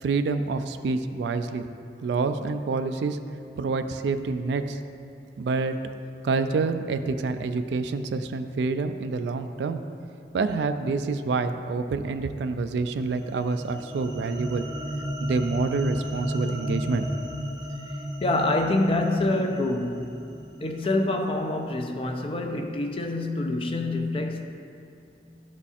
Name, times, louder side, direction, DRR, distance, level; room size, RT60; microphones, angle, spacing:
voice 1, 0.0-1.7 2.0-3.2 3.6-4.8 5.4-5.8 6.2-9.8 10.3-14.7 15.2-17.1, right 4 dB, 70° right, 9 dB, 0.3 m, -27 dB
sound 1, 13.0-21.5, equal, 25° right, 0.6 m, -34 dB
voice 2, 18.2-20.2 20.6-24.4, left 2 dB, 30° left, 4 dB, 0.4 m, -26 dB
11.0 x 4.1 x 2.4 m, 2.5 s
head